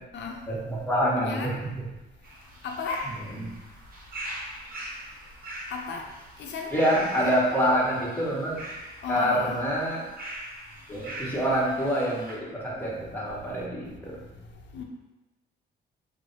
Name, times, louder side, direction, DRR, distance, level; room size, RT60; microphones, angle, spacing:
voice 1, 0.5-1.8 3.4-3.5 6.7-8.6 9.1-10.0 10.9-14.2, equal, 10° left, -6 dB, 1.1 m, -26 dB
sound 1, 2.2-12.4, right 1 dB, 45° right, 0.9 m, -41 dB
voice 2, 2.6-3.1 5.7-6.1 6.4-6.7 7.2-7.3 9.0-9.6 14.7-14.8, left 5 dB, 65° left, 1 dB, 0.6 m, -33 dB
3.1 x 2.1 x 3.9 m, 1.1 s
cardioid pair, 90°, 20 cm